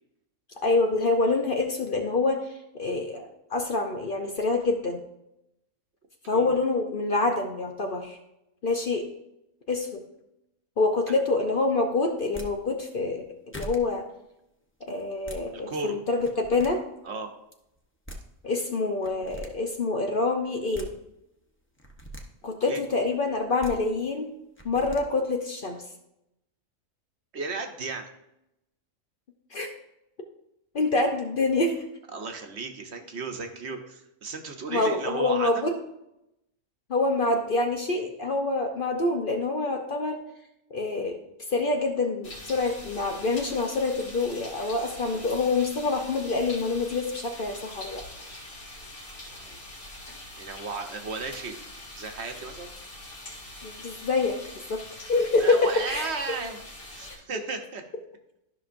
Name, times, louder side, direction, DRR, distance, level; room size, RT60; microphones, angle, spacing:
voice 1, 0.6-2.4 2.7-5.0 6.3-8.2 8.6-9.0 9.7-10.0 10.8-13.2 13.5-14.0 14.8-16.8 18.4-20.9 22.4-24.3 24.6-25.8 29.5-29.7 30.7-31.8 34.7-35.8 36.9-40.2 40.7-41.2 41.5-48.0 53.6-56.1, left 3 dB, 50° left, 4 dB, 0.8 m, -26 dB
sound 1, 12.2-12.5 13.2-13.3 13.5-13.8 15.0-15.4 16.1-16.7 17.8-17.9 18.1-18.2 19.0-19.5 20.5-20.9 21.8-22.2 23.4-23.7 24.6-25.0, right 1 dB, 10° left, 0.8 m, -40 dB
voice 2, 15.5-16.0 17.0-17.3 22.7-22.8 27.3-28.1 32.1-35.7 49.3-49.6 50.4-51.6 51.9-52.7 55.4-56.6 56.9-57.8, right 4 dB, 60° right, 4 dB, 1.1 m, -34 dB
sound 2, 42.2-57.1, left 1 dB, 80° left, 2.8 m, -43 dB
13.0 x 5.9 x 2.6 m, 0.85 s
omnidirectional pair, 1.4 m